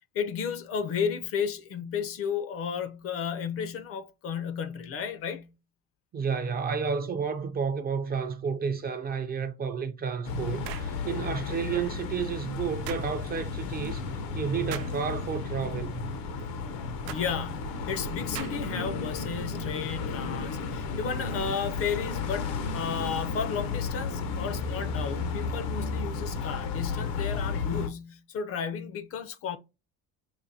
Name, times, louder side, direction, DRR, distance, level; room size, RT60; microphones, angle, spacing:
voice 1, 0.1-5.5 17.1-29.6, left 7 dB, 40° left, 0.5 m, -33 dB
voice 2, 6.1-14.0 14.3-16.1, right 6 dB, 30° right, 0.4 m, -31 dB
sound 1, 10.2-27.9, left 4 dB, 85° left, 0.8 m, -33 dB
sound 2, 10.6-11.0 12.9-13.1 14.7-15.0 17.1-17.3 18.3-18.7, right 11 dB, 90° right, 0.7 m, -39 dB
5.0 x 2.5 x 2.7 m
cardioid pair, 150°, 34 cm